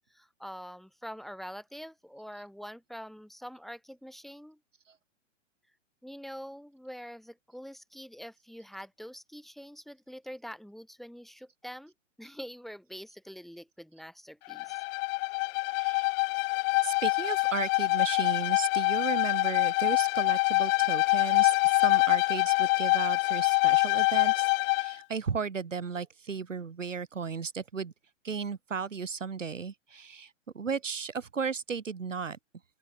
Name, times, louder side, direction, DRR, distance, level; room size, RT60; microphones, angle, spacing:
voice 1, 0.1-4.6 6.0-11.9 12.2-14.8, equal, ahead, 4.9 m, -45 dB
Bowed string instrument, 14.5-25.0, left 30 dB, 30° left, 2.0 m, -25 dB
voice 2, 15.7-16.1 16.8-27.9 28.2-32.4, right 5 dB, 70° right, 4.4 m, -35 dB
open air
figure-of-eight pair, 115°, 38 cm